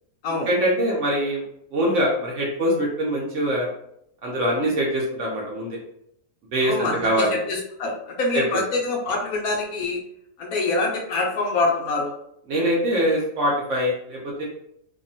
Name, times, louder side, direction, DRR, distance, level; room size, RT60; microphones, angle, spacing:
voice 1, 0.5-1.4 1.7-3.7 4.2-5.8 6.5-7.4 8.3-8.4 12.5-14.4, equal, 65° right, -2 dB, 0.7 m, -23 dB
voice 2, 6.6-10.0 10.4-12.1, left 3 dB, 70° left, -2 dB, 0.9 m, -25 dB
2.7 x 2.2 x 2.6 m, 0.75 s
omnidirectional pair, 1.8 m